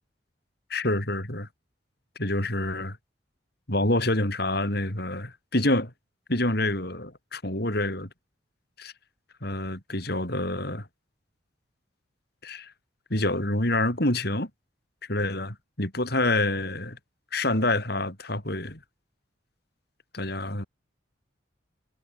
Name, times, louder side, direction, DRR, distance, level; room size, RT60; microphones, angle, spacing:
voice 1, 0.7-1.5 2.2-3.0 3.7-5.9 6.3-8.1 8.8-8.9 9.4-10.9 12.4-12.7 13.1-14.5 15.1-17.0 17.3-18.8 20.1-20.6, left 1 dB, 55° left, 6.4 m, -27 dB
head